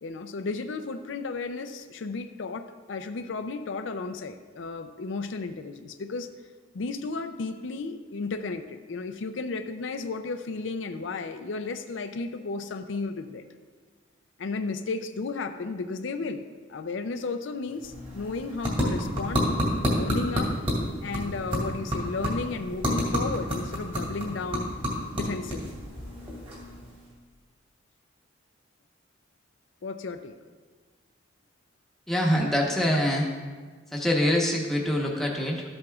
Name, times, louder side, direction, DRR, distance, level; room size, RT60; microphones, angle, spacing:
voice 1, 0.0-6.3 6.7-13.4 14.4-16.4 16.7-19.5 19.9-20.5 21.0-24.7 25.1-25.8 29.8-30.3, left 3 dB, 75° left, 8 dB, 0.5 m, -33 dB
sound 1, 17.7-27.1, equal, 30° right, 2.3 m, -30 dB
voice 2, 32.1-33.2 33.9-35.6, equal, ahead, -2 dB, 1.0 m, -24 dB
13.5 x 7.7 x 2.4 m, 1.4 s
head